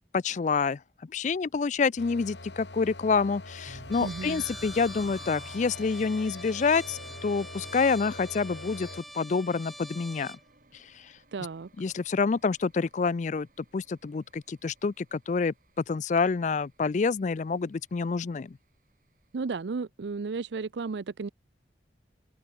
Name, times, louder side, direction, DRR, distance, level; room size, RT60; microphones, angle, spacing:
voice 1, 0.1-0.8 1.1-8.9 9.1-10.4 11.8-13.5 13.7-15.5 15.9-18.6, left 4 dB, 45° left, 0.4 m, -27 dB
sound 1, 2.0-9.0, left 2 dB, 80° left, 3.2 m, -44 dB
sound 2, 3.6-19.4, equal, 50° right, 8.0 m, -56 dB
Trumpet, 3.9-10.4, equal, ahead, 1.6 m, -45 dB
voice 2, 4.0-4.4 11.3-11.7 19.3-21.3, right 4 dB, 80° right, 0.5 m, -33 dB
open air
head